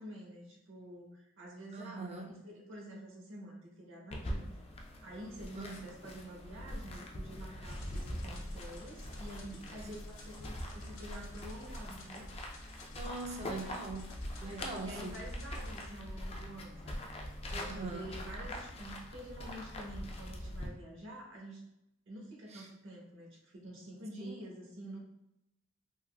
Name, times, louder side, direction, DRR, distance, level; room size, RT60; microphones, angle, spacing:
voice 1, 0.0-4.6 5.0-12.3 14.5-21.6 22.1-25.0, right 1 dB, 65° right, -2 dB, 0.9 m, -48 dB
voice 2, 1.7-2.3 5.5-5.8 9.8-10.0 13.0-15.2 17.5-18.1 22.5-22.7 24.2-24.3, right 2 dB, 30° right, 1 dB, 0.4 m, -42 dB
sound 1, 4.1-20.7, left 1 dB, 30° left, 0.4 m, -43 dB
sound 2, 7.6-15.9, left 3 dB, 70° left, 0.7 m, -58 dB
3.5 x 2.5 x 2.2 m, 0.84 s
head